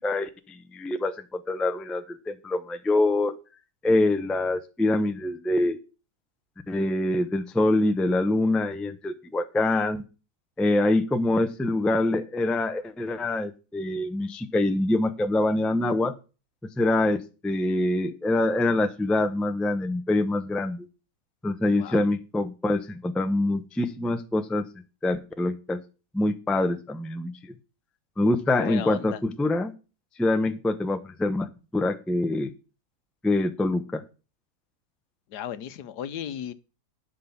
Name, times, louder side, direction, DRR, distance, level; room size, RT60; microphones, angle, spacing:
voice 1, 0.0-3.3 3.8-5.8 6.7-10.0 10.6-16.1 16.6-20.9 21.4-24.7 25.0-25.8 26.1-27.4 28.2-29.7 30.2-32.5 33.2-34.0, left 2 dB, ahead, 0.4 m, -25 dB
voice 2, 28.6-29.2 35.3-36.5, left 10 dB, 80° left, 1.4 m, -34 dB
12.0 x 5.6 x 7.1 m
omnidirectional pair, 1.7 m